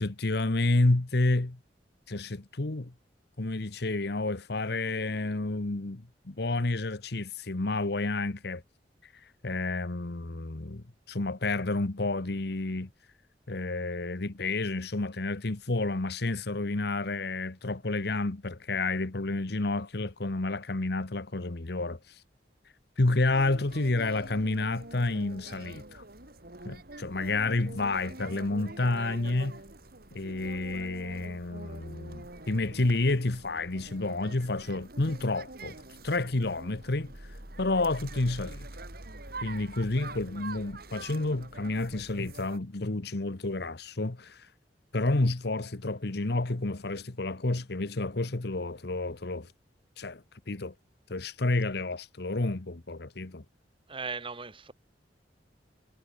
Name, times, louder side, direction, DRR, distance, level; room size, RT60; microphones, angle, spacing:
voice 1, 0.0-1.6 2.1-2.9 3.4-8.6 9.4-12.9 13.5-22.2 23.0-26.0 26.6-29.6 30.1-37.1 37.6-38.7 39.4-44.5 44.9-49.5 50.0-50.7 51.1-53.4, left 2 dB, 65° left, 1.2 m, -30 dB
sound 1, 23.3-42.6, right 2 dB, 55° right, 4.1 m, -45 dB
voice 2, 53.9-54.7, right 4 dB, 30° right, 2.9 m, -37 dB
head